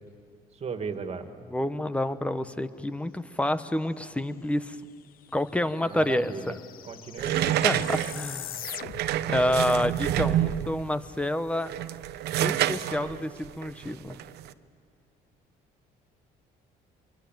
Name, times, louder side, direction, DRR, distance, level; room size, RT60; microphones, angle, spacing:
voice 1, 0.5-1.4 5.9-6.5 6.8-7.6, right 5 dB, 40° right, 7 dB, 2.2 m, -36 dB
voice 2, 1.5-4.8 5.3-6.5 7.6-8.7 9.3-11.7 12.4-14.2, left 1 dB, 5° left, 12 dB, 1.0 m, -28 dB
sound 1, 4.8-4.9 5.1-9.3, left 12 dB, 60° left, 0.6 m, -42 dB
sound 2, 7.2-10.8 11.5-14.5, right 12 dB, 75° right, 1.0 m, -28 dB
26.0 x 23.5 x 9.2 m, 2.3 s
cardioid pair, 110°, 17 cm